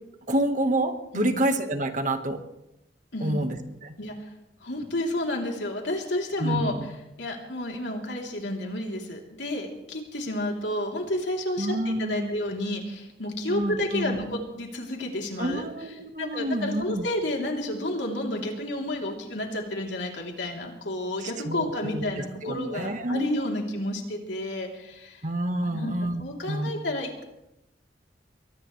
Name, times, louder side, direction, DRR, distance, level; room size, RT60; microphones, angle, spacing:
voice 1, 0.3-2.4 3.2-4.0 6.4-6.8 11.6-12.3 13.5-14.2 15.4-17.0 21.2-23.4 25.2-26.2 26.5-26.7, right 1 dB, 45° right, 7 dB, 1.5 m, -28 dB
voice 2, 4.6-6.8 7.2-15.6 16.2-25.2 25.6-27.2, left 1 dB, 85° left, 0 dB, 3.4 m, -31 dB
23.0 x 19.0 x 3.3 m, 0.89 s
head